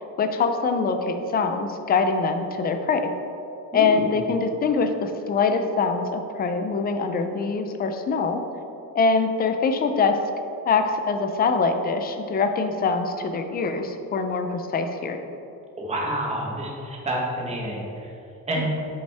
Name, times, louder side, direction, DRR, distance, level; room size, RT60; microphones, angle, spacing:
voice 1, 0.2-3.0 3.7-8.4 8.9-10.1 10.7-15.2 18.6-18.7, left 4 dB, 30° left, 7 dB, 0.4 m, -23 dB
voice 2, 3.7-4.0 15.8-18.1 18.5-18.7, right 1 dB, 20° right, -2 dB, 1.0 m, -28 dB
7.5 x 5.4 x 3.4 m, 2.8 s
cardioid pair, 175°, 35 cm